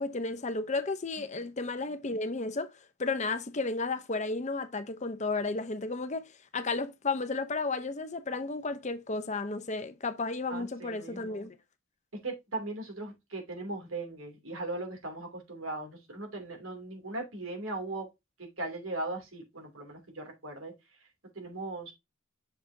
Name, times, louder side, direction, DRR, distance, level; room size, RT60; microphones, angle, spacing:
voice 1, 0.0-2.7 3.0-11.6, left 3 dB, 35° left, 0.7 m, -33 dB
voice 2, 10.5-11.5 12.2-18.1 18.4-20.7 21.3-21.9, right 2 dB, 80° right, 2.8 m, -38 dB
6.7 x 5.8 x 2.7 m
head